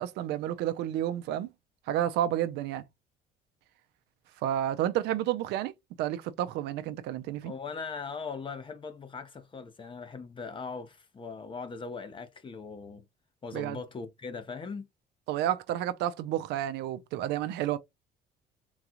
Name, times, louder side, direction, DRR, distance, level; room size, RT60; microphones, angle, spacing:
voice 1, 0.0-1.5 1.9-2.8 4.4-5.7 6.0-7.5 13.5-13.8 15.3-17.8, right 12 dB, 80° right, 0.5 m, -30 dB
voice 2, 7.4-13.0 13.4-14.9, left 5 dB, 30° left, 0.8 m, -40 dB
4.0 x 2.4 x 2.8 m
cardioid pair, 110°, 17 cm